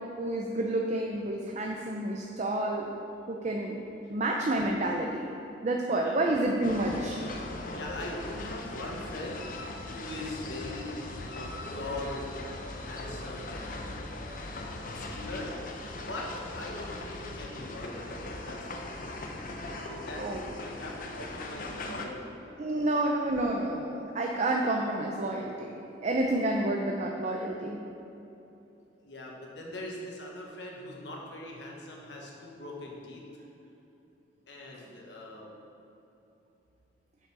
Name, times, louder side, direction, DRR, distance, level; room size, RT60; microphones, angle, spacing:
voice 1, 0.2-2.9 3.3-3.8 4.1-5.3 5.6-7.2 20.2-20.4 22.6-27.8, right 1 dB, 40° right, 0 dB, 0.5 m, -29 dB
voice 2, 5.9-6.2 7.7-9.4 9.9-11.5 11.8-12.3 12.8-13.9 14.5-15.5 16.1-16.3 16.5-18.6 18.9-19.2 19.8-22.6 29.0-33.2 34.5-35.5, left 2 dB, 75° left, -1 dB, 1.4 m, -41 dB
sound 1, 6.6-22.1, left 2 dB, 50° left, 0.7 m, -39 dB
7.2 x 6.7 x 4.9 m, 2.9 s
head